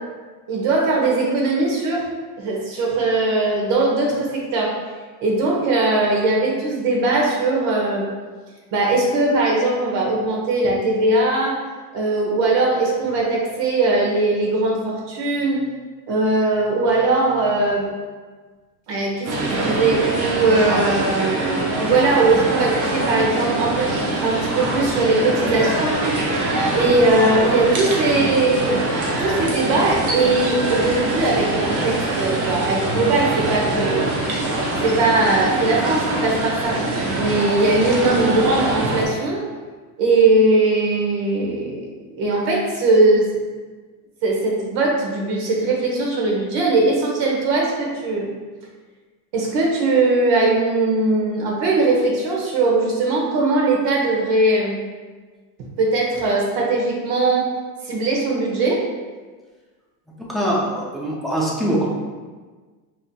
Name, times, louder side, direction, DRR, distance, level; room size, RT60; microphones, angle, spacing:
voice 1, 0.5-2.1 2.4-4.7 5.2-8.1 8.7-11.6 11.9-15.6 16.1-17.9 18.9-23.9 24.2-26.2 26.7-28.8 29.2-34.1 34.8-36.8 37.1-39.4 40.0-43.3 44.2-48.3 49.3-54.8 55.8-57.5 57.8-58.8, right 2 dB, 60° right, -2 dB, 1.1 m, -20 dB
sound 1, 19.2-39.0, right 2 dB, 40° right, 0.8 m, -24 dB
voice 2, 60.3-61.9, right 1 dB, ahead, -5 dB, 0.3 m, -22 dB
4.7 x 2.9 x 2.2 m, 1.4 s
supercardioid pair, 120°, 47 cm